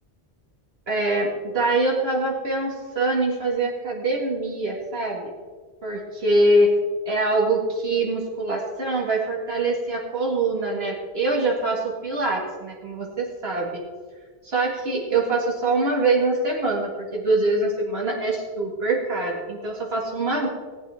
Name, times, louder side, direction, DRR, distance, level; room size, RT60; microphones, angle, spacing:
voice 1, 0.9-5.3 5.8-6.7 7.1-13.8 14.4-20.5, right 2 dB, 70° right, -2 dB, 2.5 m, -24 dB
18.5 x 9.0 x 3.6 m, 1.5 s
omnidirectional pair, 1.1 m